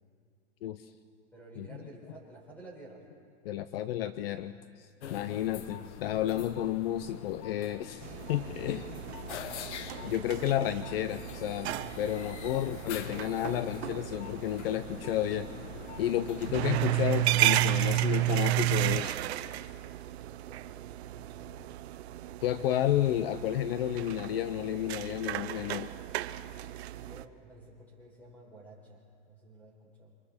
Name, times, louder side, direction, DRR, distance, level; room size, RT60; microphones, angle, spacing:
voice 1, 0.6-0.9 1.6-1.7 3.4-8.9 10.0-11.7 12.0-15.5 16.0-19.2 22.4-25.9, left 12 dB, 55° left, 13 dB, 0.7 m, -31 dB
voice 2, 1.3-3.0 8.9-9.8 16.3-16.4 20.3-22.5 27.0-30.1, right 2 dB, 5° left, -2 dB, 4.8 m, -53 dB
sound 1, 5.0-18.5, left 9 dB, 75° left, 1.3 m, -44 dB
sound 2, 8.0-27.2, right 16 dB, 65° right, 0.8 m, -33 dB
28.5 x 25.5 x 4.3 m, 2.2 s
supercardioid pair, 160°, 35 cm